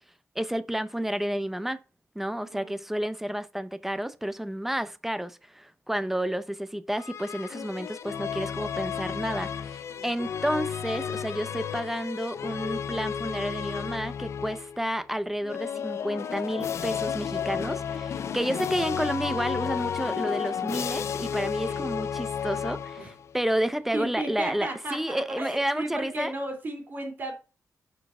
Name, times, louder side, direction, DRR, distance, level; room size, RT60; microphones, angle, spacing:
voice 1, 0.4-1.8 2.1-26.4, right 1 dB, 5° right, 0.5 m, -31 dB
voice 2, 2.4-2.8 6.0-6.1 9.9-10.1 18.1-18.4 21.6-21.9 23.0-23.1 23.9-27.3, right 1 dB, 35° right, 2.8 m, -35 dB
sound 1, 7.0-14.8 15.4-23.4, left 8 dB, 55° left, 0.4 m, -32 dB
6.0 x 4.6 x 5.9 m
wide cardioid pair, 170°, 6 cm